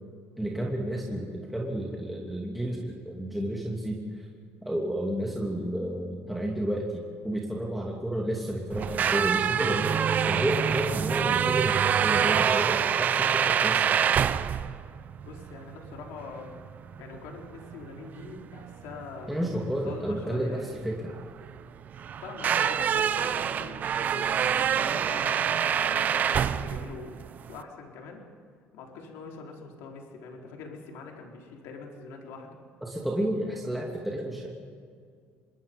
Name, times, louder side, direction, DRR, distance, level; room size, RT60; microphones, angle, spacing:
voice 1, 0.4-4.3 4.6-10.0 10.3-13.9 19.3-21.0 32.8-34.5, right 1 dB, ahead, -2 dB, 2.6 m, -31 dB
sound 1, 8.7-27.6, right 8 dB, 40° right, 0.7 m, -26 dB
Chink clink, 9.7-14.9, right 2 dB, 25° right, 1.9 m, -44 dB
voice 2, 15.2-16.5 17.0-19.3 19.8-20.6 22.2-28.2 28.7-32.6, left 4 dB, 85° left, 1 dB, 4.1 m, -43 dB
26.0 x 22.5 x 5.4 m, 2.2 s
cardioid pair, 140°, 4 cm